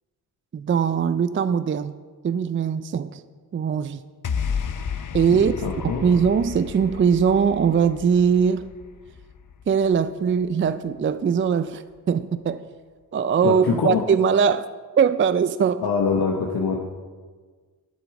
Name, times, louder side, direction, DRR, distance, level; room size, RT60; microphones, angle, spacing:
voice 1, 0.5-2.0 2.2-3.2 3.5-4.0 5.1-5.5 5.8-8.7 9.7-12.7 13.1-14.7 15.0-15.8, right 6 dB, 30° right, 13 dB, 0.4 m, -21 dB
sound 1, 4.2-10.7, left 6 dB, 50° left, 0.7 m, -33 dB
voice 2, 5.3-6.1 13.4-14.0 15.8-16.8, left 5 dB, 70° left, 0 dB, 1.1 m, -24 dB
11.5 x 7.0 x 4.8 m, 1.5 s
cardioid pair, 50°, 40 cm